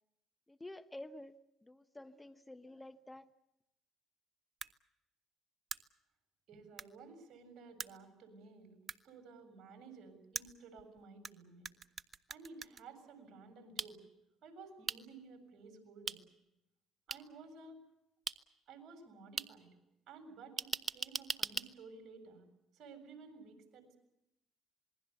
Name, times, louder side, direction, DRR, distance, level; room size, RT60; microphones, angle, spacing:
voice 1, 0.5-3.3, left 1 dB, 15° left, 1.0 m, -50 dB
sound 1, 4.6-4.7 5.7-5.8 6.8-6.9 7.8-7.9 8.9-9.0 10.3-11.3 11.6-12.8 13.8-13.9 14.9-15.0 16.1-16.2 17.1-17.2 18.3-18.4 19.4-19.5 20.6-21.7, right 5 dB, 40° right, 1.1 m, -39 dB
voice 2, 6.5-8.8 9.0-11.7 12.3-14.0 14.4-16.2 17.1-17.8 18.7-19.7 20.1-22.5 22.7-24.0, right 4 dB, 60° right, 7.3 m, -54 dB
27.0 x 21.0 x 7.1 m
supercardioid pair, 65°, 0 cm